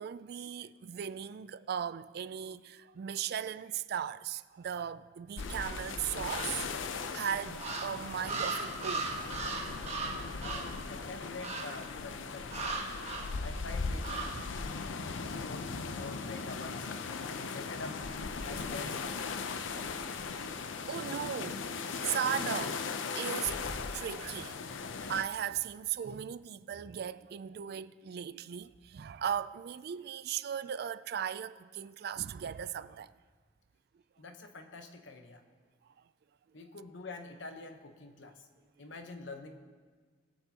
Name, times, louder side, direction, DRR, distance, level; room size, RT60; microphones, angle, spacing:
voice 1, 0.0-6.7 7.1-9.1 13.1-13.3 14.3-14.4 14.8-14.9 19.7-20.2 20.9-22.8 23.2-23.6 23.9-24.6 25.1-33.1, right 9 dB, 55° right, 0.3 m, -37 dB
sound 1, 5.4-25.2, left 4 dB, 90° left, 0.6 m, -38 dB
sound 2, 6.3-6.9 7.6-10.8 11.4-11.9 12.5-13.4 14.0-14.5, right 3 dB, 35° right, 1.2 m, -38 dB
voice 2, 10.4-12.7 13.4-14.3 15.3-18.0 18.4-19.3 34.2-35.4 36.5-38.5 38.8-39.6, left 3 dB, 70° left, 1.0 m, -46 dB
sound 3, 23.5-24.0, left 2 dB, 30° left, 0.4 m, -43 dB
21.5 x 8.1 x 2.9 m
head